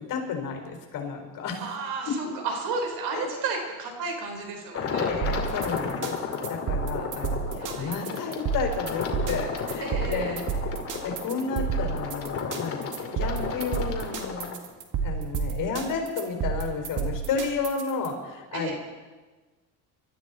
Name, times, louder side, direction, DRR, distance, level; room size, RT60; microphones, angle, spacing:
voice 1, 0.0-1.7 2.1-2.4 3.1-3.3 5.1-10.7 11.0-14.5 15.0-18.7, left 5 dB, 60° left, 2 dB, 4.2 m, -32 dB
voice 2, 1.6-5.1 7.6-7.9 9.8-10.4 18.5-18.7, right 4 dB, 75° right, 3 dB, 4.1 m, -32 dB
sound 1, 4.7-14.6, left 5 dB, 40° left, 2.4 m, -33 dB
sound 2, 5.2-18.1, right 6 dB, 60° right, 2.1 m, -31 dB
24.5 x 13.0 x 4.2 m, 1.3 s
cardioid pair, 120°, 36 cm